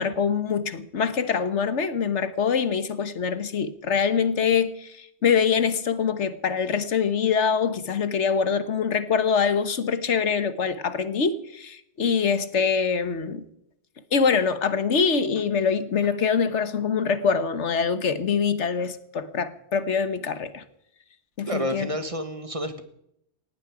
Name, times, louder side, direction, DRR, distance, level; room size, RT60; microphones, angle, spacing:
voice 1, 0.0-13.4 14.1-20.6 21.4-21.9, left 6 dB, 85° left, 1.5 m, -24 dB
voice 2, 21.5-22.8, equal, 30° right, 1.8 m, -29 dB
19.0 x 15.0 x 4.9 m
omnidirectional pair, 1.2 m